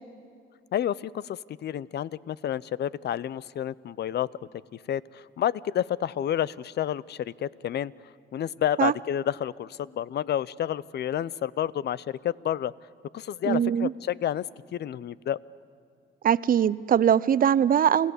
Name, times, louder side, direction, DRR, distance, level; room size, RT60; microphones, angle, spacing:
voice 1, 0.7-4.3 4.9-7.9 8.3-12.7 13.1-14.4 14.7-15.4, left 10 dB, 60° left, 21 dB, 0.6 m, -30 dB
voice 2, 13.4-13.9 16.2-18.1, right 9 dB, 45° right, 18 dB, 0.5 m, -21 dB
28.5 x 16.0 x 8.2 m, 2.3 s
cardioid pair, 90°, 20 cm